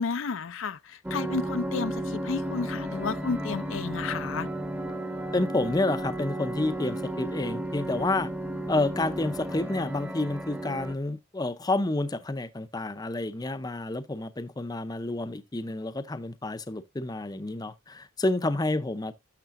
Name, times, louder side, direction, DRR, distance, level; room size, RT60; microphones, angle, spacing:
voice 1, 0.0-4.5, left 4 dB, 70° left, 0.5 m, -32 dB
sound 1, 1.0-10.9, right 1 dB, 10° right, 0.8 m, -33 dB
voice 2, 5.3-8.3 8.7-19.1, left 2 dB, 20° left, 0.5 m, -29 dB
12.0 x 6.6 x 2.5 m
head